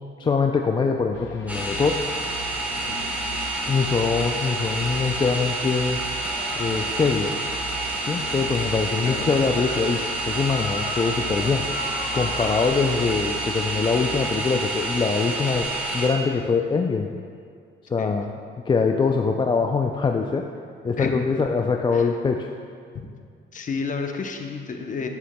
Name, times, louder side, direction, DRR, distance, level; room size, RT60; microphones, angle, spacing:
voice 1, 0.2-2.0 3.7-6.0 6.6-7.3 8.1-11.7 12.1-17.1 17.9-18.3 18.7-20.4 20.8-22.5, left 5 dB, 25° left, 3 dB, 0.3 m, -23 dB
sound 1, 1.1-14.7, equal, 75° left, 0.6 m, -39 dB
sound 2, 1.5-16.1, right 2 dB, 5° right, 1.2 m, -29 dB
sound 3, 2.2-5.3 5.6-12.7, left 2 dB, 60° left, 1.1 m, -39 dB
voice 2, 2.9-3.2 9.0-9.3 18.0-18.2 21.0-21.1 21.9-22.1 23.5-25.1, left 5 dB, 40° left, 4 dB, 0.7 m, -31 dB
9.2 x 6.9 x 2.2 m, 2.2 s
cardioid pair, 90°, 20 cm